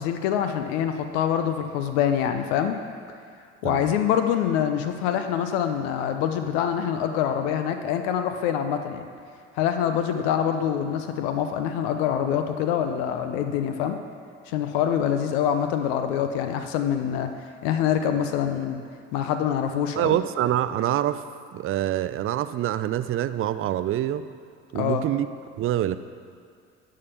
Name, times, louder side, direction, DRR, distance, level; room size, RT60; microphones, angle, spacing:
voice 1, 0.0-2.8 3.6-9.0 9.6-14.0 14.5-17.3 17.6-18.8 19.1-20.2 24.7-25.0, left 9 dB, 75° left, 7 dB, 0.7 m, -25 dB
voice 2, 20.0-21.2 21.5-24.2 24.7-25.3 25.6-26.0, right 12 dB, 40° right, 13 dB, 0.5 m, -25 dB
11.0 x 3.8 x 6.9 m, 2.2 s
hypercardioid pair, 70°, 33 cm